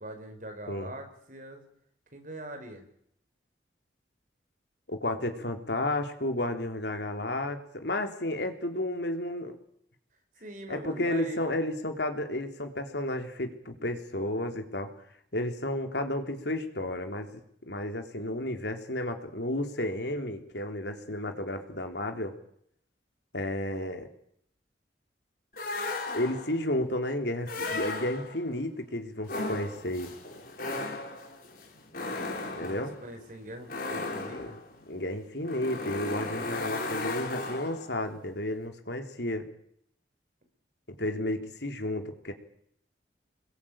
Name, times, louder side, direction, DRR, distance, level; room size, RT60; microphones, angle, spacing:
voice 1, 0.0-1.6 2.1-2.8 10.4-11.6 32.5-34.6, right 1 dB, 45° right, 5 dB, 5.4 m, -42 dB
voice 2, 4.9-9.6 10.7-14.9 15.3-17.3 17.6-22.3 23.3-24.1 26.1-30.1 32.6-32.9 34.3-34.5 34.9-39.5 41.0-42.3, left 1 dB, 70° left, 5 dB, 3.5 m, -32 dB
sound 1, 25.6-26.6 27.4-28.5 29.2-38.0, left 2 dB, 50° left, 4.3 m, -36 dB
28.0 x 21.5 x 8.9 m, 0.71 s
head